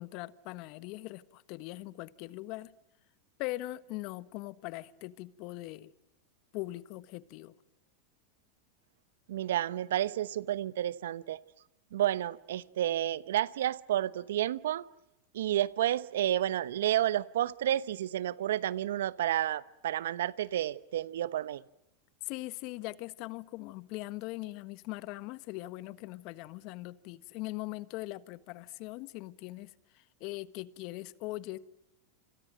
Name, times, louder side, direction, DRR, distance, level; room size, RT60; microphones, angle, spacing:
voice 1, 0.0-2.7 3.4-5.9 6.5-7.6 22.2-31.6, left 19 dB, 55° left, 1.4 m, -41 dB
voice 2, 9.3-11.4 11.9-14.8 15.3-21.6, right 12 dB, 75° right, 1.0 m, -30 dB
28.0 x 27.5 x 7.8 m
hypercardioid pair, 100°, 0 cm